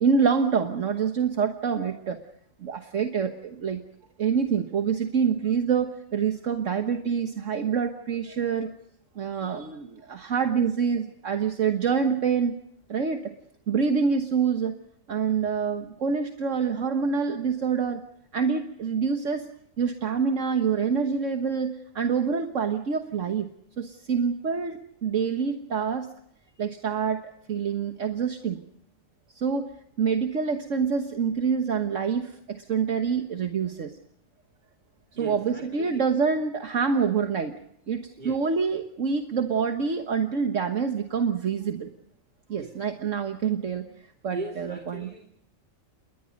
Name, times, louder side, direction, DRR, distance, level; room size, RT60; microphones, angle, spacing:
voice 1, 0.0-2.2 2.6-3.8 4.2-8.7 9.1-12.5 12.9-13.3 13.7-14.8 15.1-18.0 18.3-19.5 19.8-23.5 23.8-26.1 26.6-28.6 29.3-29.7 30.0-33.9 35.2-37.5 37.9-41.9 42.5-43.9 44.2-45.1, right 6 dB, 65° right, 6 dB, 1.7 m, -26 dB
voice 2, 35.2-36.1 38.2-38.4 42.5-42.8 44.3-45.3, right 2 dB, 35° right, 5 dB, 3.0 m, -39 dB
29.0 x 21.5 x 5.3 m, 0.73 s
omnidirectional pair, 1.4 m